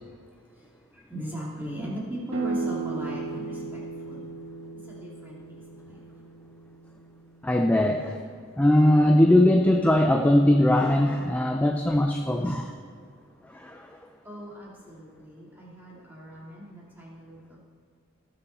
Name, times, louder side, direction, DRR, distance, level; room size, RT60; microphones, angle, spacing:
voice 1, 0.5-4.3 4.8-6.3 12.4-12.6 14.2-17.6, equal, 10° right, -5 dB, 2.4 m, -39 dB
sound 1, 2.3-7.9, right 3 dB, 70° right, 1.7 m, -36 dB
voice 2, 7.4-8.2 8.6-12.6 13.5-13.9, left 1 dB, 5° left, 4 dB, 0.4 m, -20 dB
18.0 x 7.0 x 4.2 m, 2.1 s
head